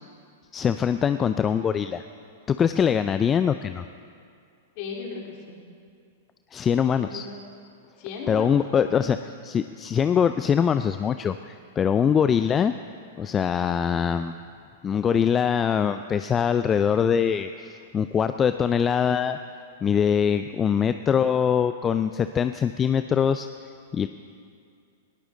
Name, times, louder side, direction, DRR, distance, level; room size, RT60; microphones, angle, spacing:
voice 1, 0.5-2.0 2.5-3.8 6.5-7.2 8.3-12.7 13.2-14.4 14.8-19.4 19.8-24.1, left 7 dB, 25° left, 10 dB, 0.4 m, -23 dB
voice 2, 4.8-5.6 7.0-7.4 8.0-9.0, left 5 dB, 50° left, -1 dB, 3.6 m, -37 dB
19.0 x 18.0 x 3.9 m, 2.3 s
figure-of-eight pair, 105°, 0 cm